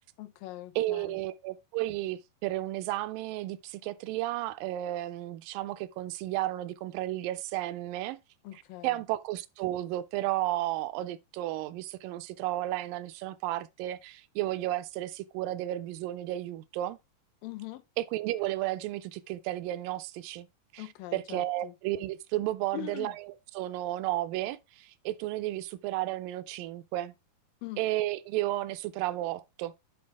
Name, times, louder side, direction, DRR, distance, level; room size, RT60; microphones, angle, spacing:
voice 1, 0.2-1.1 8.4-9.0 17.4-17.8 20.8-21.7 22.7-23.1 27.6-27.8, left 16 dB, 80° left, 2.2 m, -42 dB
voice 2, 0.8-8.2 8.8-17.0 18.0-20.5 20.7-20.9 21.1-27.1 27.8-29.7, right 15 dB, 80° right, 2.1 m, -33 dB
9.6 x 4.5 x 3.4 m
omnidirectional pair, 4.3 m